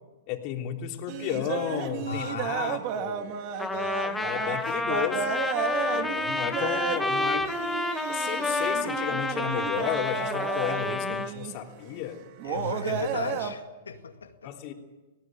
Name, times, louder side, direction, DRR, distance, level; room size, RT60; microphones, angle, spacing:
voice 1, 0.3-3.4 4.2-7.5 8.1-12.2 14.4-14.7, left 11 dB, 45° left, 3 dB, 3.3 m, -33 dB
sound 1, 1.1-11.6 12.4-13.5, right 9 dB, 45° right, 2.1 m, -33 dB
voice 2, 2.1-2.5 3.7-3.9 12.4-14.5, left 5 dB, 90° left, 6 dB, 2.1 m, -35 dB
Trumpet, 3.6-11.3, left 3 dB, 5° left, 2.0 m, -29 dB
19.0 x 18.5 x 9.0 m, 1.2 s
hypercardioid pair, 115°, 0 cm